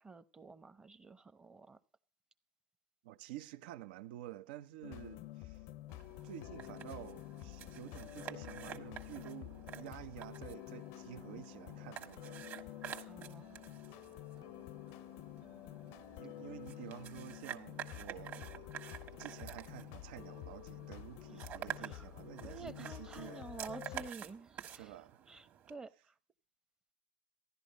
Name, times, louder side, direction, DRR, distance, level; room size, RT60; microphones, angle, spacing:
voice 1, 0.0-1.8 13.1-13.6 21.3-21.4 21.8-26.2, right 4 dB, 15° right, 0.7 m, -51 dB
voice 2, 3.0-5.6 6.2-12.6 16.2-18.8 19.1-23.5 24.7-25.2, right 14 dB, 80° right, 0.7 m, -50 dB
sound 1, 4.8-24.1, left 15 dB, 65° left, 0.6 m, -49 dB
sound 2, 5.9-25.7, right 9 dB, 40° right, 1.5 m, -50 dB
sound 3, 7.4-24.1, right 12 dB, 55° right, 1.5 m, -68 dB
15.5 x 11.5 x 5.2 m
supercardioid pair, 145°, 5 cm